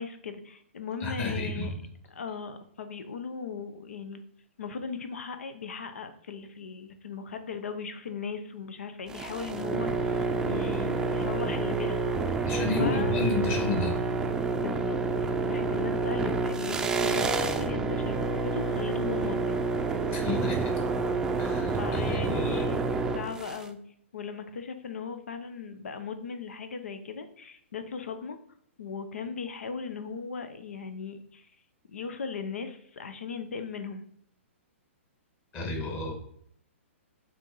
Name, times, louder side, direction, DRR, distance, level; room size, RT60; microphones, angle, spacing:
voice 1, 0.0-1.7 2.1-4.2 4.6-12.4 12.8-13.2 14.6-19.6 21.8-22.8 23.1-23.8 24.1-28.4 28.8-31.5 31.9-34.0, left 5 dB, 85° left, 8 dB, 0.8 m, -38 dB
voice 2, 1.0-1.7 12.5-14.0 20.1-20.7 21.4-22.6 35.5-36.1, left 3 dB, 30° left, 1 dB, 2.1 m, -31 dB
sound 1, 9.1-23.7, right 4 dB, 10° right, 0.5 m, -28 dB
6.0 x 4.4 x 5.5 m, 0.66 s
hypercardioid pair, 140°, 7 cm